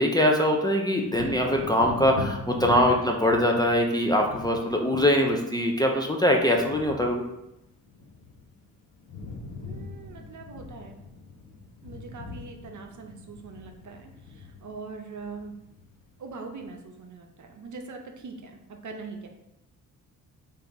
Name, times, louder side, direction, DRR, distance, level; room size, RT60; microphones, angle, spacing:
voice 1, 0.0-7.3, equal, 10° left, 0 dB, 0.6 m, -23 dB
Wind / Thunder, 1.0-8.6 8.9-16.1 16.6-16.7, left 3 dB, 80° left, 1.0 m, -41 dB
voice 2, 9.6-11.0 11.8-15.6 16.2-19.3, right 4 dB, 40° right, 3 dB, 0.8 m, -42 dB
3.3 x 2.7 x 3.9 m, 0.86 s
hypercardioid pair, 45°, 44 cm